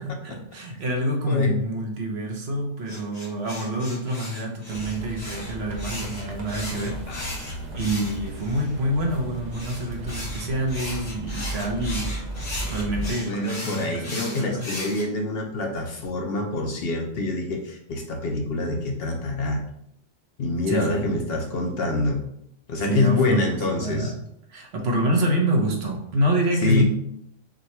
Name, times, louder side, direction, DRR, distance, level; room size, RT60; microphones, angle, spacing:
voice 1, 0.0-7.0 7.7-12.2 12.6-14.7 20.7-21.2 22.9-23.5 23.7-24.2 24.5-26.8, right 1 dB, 65° right, 2 dB, 1.0 m, -27 dB
sound 1, 2.9-8.7 9.5-15.0, left 1 dB, 75° left, 2.3 m, -37 dB
sound 2, 4.7-13.1, right 1 dB, 45° right, 0.6 m, -35 dB
voice 2, 7.1-7.8 13.2-19.6 20.4-22.2 22.7-24.1 26.6-26.8, left 2 dB, 60° left, 3 dB, 0.8 m, -26 dB
6.2 x 2.2 x 2.9 m, 0.73 s
omnidirectional pair, 1.2 m